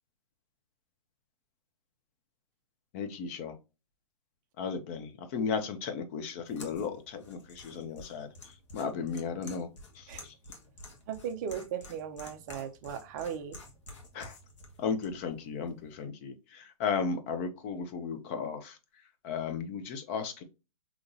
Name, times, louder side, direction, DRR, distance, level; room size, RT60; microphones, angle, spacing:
voice 1, 2.9-3.6 4.6-9.7 9.9-10.3 14.1-14.4 14.8-18.8 19.2-20.4, left 5 dB, 20° left, 0.4 m, -35 dB
sound 1, 6.4-16.0, left 2 dB, 55° left, 1.2 m, -51 dB
voice 2, 11.1-13.6, right 8 dB, 30° right, 0.5 m, -37 dB
3.8 x 2.8 x 2.5 m
hypercardioid pair, 155°, 19 cm